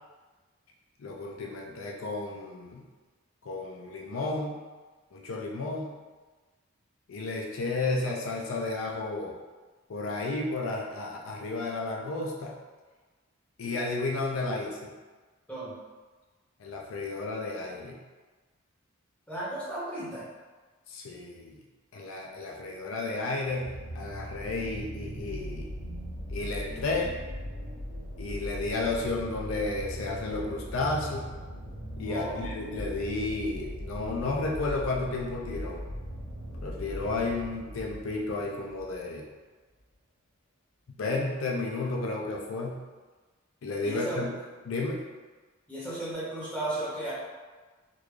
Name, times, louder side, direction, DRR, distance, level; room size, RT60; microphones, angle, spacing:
voice 1, 1.0-2.8 3.4-4.6 5.1-5.9 7.1-9.4 9.9-12.5 13.6-14.9 16.6-18.0 20.9-21.6 21.9-25.7 26.3-27.2 28.2-31.3 32.0-35.8 36.6-39.2 41.0-42.8 43.6-44.3 44.6-45.0, left 3 dB, 75° left, -1 dB, 0.4 m, -32 dB
voice 2, 19.3-20.2 32.0-32.4 43.8-44.2 45.7-47.1, right 1 dB, 5° left, -10 dB, 1.1 m, -34 dB
sound 1, 23.6-39.0 39.8-39.9, equal, 85° right, 0.8 m, -39 dB
3.6 x 2.4 x 3.2 m, 1.3 s
head